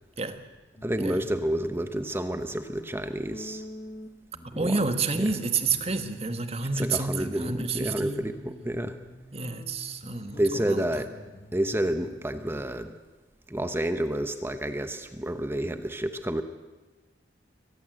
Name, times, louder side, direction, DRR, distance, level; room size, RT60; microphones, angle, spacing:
sound 1, 0.8-1.4 1.7-6.7 7.0-13.0, equal, 40° left, 1.8 m, -47 dB
voice 1, 0.8-3.6 4.5-4.8 5.2-5.3 6.8-9.0 10.4-11.1 11.5-12.9 13.5-16.4, right 1 dB, 15° right, 9 dB, 1.0 m, -29 dB
voice 2, 4.6-8.2 9.3-10.8, right 4 dB, 35° right, 9 dB, 1.6 m, -29 dB
24.0 x 19.0 x 7.7 m, 1.2 s
head